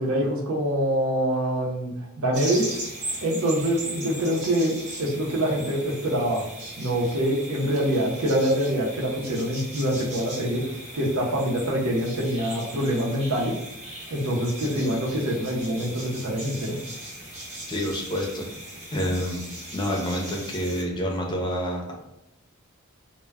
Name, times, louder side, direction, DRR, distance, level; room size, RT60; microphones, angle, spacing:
voice 1, 0.0-2.8 3.2-6.4 6.8-10.6 10.9-13.5 14.1-16.8, equal, 75° right, -2 dB, 0.7 m, -25 dB
sound 1, 2.3-20.8, right 1 dB, 30° right, 0.7 m, -38 dB
voice 2, 17.7-18.5 18.9-19.4 19.7-21.9, equal, 20° left, 0 dB, 0.5 m, -28 dB
2.1 x 2.1 x 3.4 m, 0.89 s
head